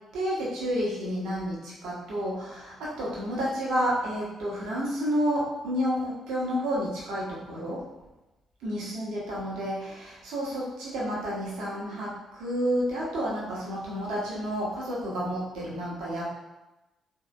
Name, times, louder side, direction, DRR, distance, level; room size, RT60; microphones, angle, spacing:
voice 1, 0.1-7.8 8.6-12.1 12.4-16.2, equal, 65° right, -6 dB, 1.0 m, -30 dB
4.1 x 2.8 x 2.4 m, 1.0 s
figure-of-eight pair, 40°, 0 cm